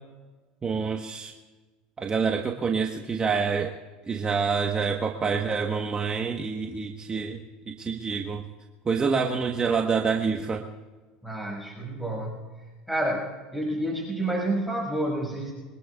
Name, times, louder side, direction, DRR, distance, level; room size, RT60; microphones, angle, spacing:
voice 1, 0.6-1.3 2.0-3.7 4.0-7.4 7.7-8.4 8.8-10.7, right 5 dB, 25° right, 2 dB, 1.3 m, -27 dB
voice 2, 11.2-15.5, right 1 dB, ahead, -2 dB, 6.1 m, -30 dB
24.5 x 20.0 x 2.4 m, 1.3 s
hypercardioid pair, 95°, 4 cm